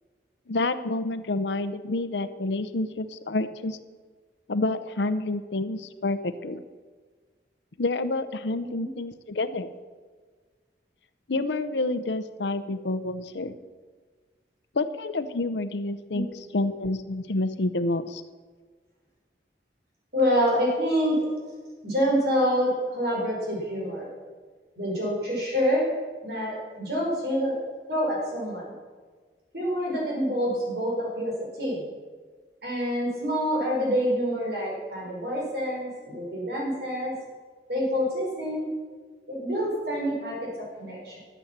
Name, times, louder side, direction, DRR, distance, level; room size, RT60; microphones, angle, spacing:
voice 1, 0.5-3.8 4.5-6.6 7.8-9.7 11.3-13.5 14.7-16.3 16.5-18.2, left 2 dB, 80° left, 12 dB, 0.7 m, -28 dB
voice 2, 8.6-8.9 16.1-16.2 20.1-21.2 21.8-24.1 24.8-25.9 26.2-27.6 27.9-28.7 29.5-31.8 32.6-37.1 37.7-38.7 39.3-41.2, equal, 65° right, -3 dB, 4.9 m, -27 dB
13.0 x 8.2 x 7.3 m, 1.5 s
head